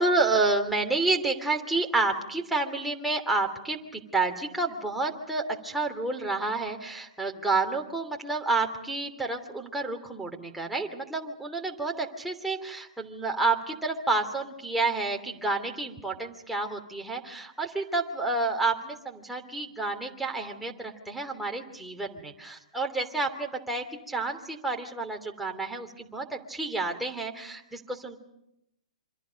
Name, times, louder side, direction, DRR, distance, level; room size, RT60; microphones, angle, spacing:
voice 1, 0.0-28.2, right 3 dB, 5° right, 1 dB, 3.0 m, -29 dB
28.5 x 26.0 x 5.3 m, 0.82 s
hypercardioid pair, 120°, 4 cm